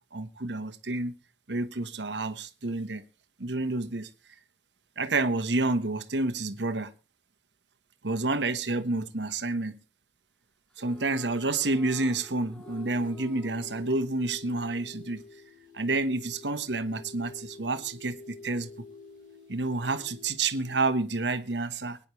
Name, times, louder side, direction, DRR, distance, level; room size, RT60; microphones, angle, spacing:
voice 1, 0.1-1.1 1.5-3.0 3.4-4.1 5.0-6.9 8.0-9.8 10.8-15.2 15.7-18.7 19.5-22.0, right 2 dB, 90° right, 1.3 m, -29 dB
sound 1, 10.7-15.1, equal, 5° left, 1.6 m, -50 dB
sound 2, 12.6-20.8, left 3 dB, 45° left, 2.4 m, -48 dB
23.0 x 10.0 x 3.2 m
head